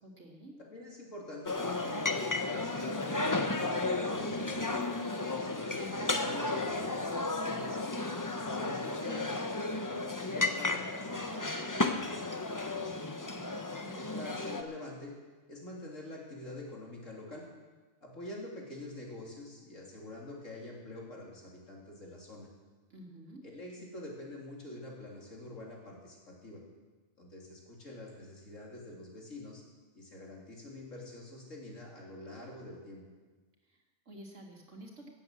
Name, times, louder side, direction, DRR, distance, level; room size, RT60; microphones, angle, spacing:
voice 1, 0.0-0.6 13.3-14.0 22.9-23.4 33.6-35.1, right 1 dB, 70° right, 0 dB, 2.7 m, -51 dB
voice 2, 0.7-4.7 5.3-7.8 8.3-13.0 13.9-15.1 15.5-17.5 18.0-22.5 23.4-26.6 27.2-29.6 29.9-33.0, left 1 dB, 85° left, -2 dB, 3.5 m, -46 dB
sound 1, 1.5-14.6, left 2 dB, 20° left, 0.7 m, -33 dB
17.5 x 8.2 x 7.5 m, 1.3 s
omnidirectional pair, 1.3 m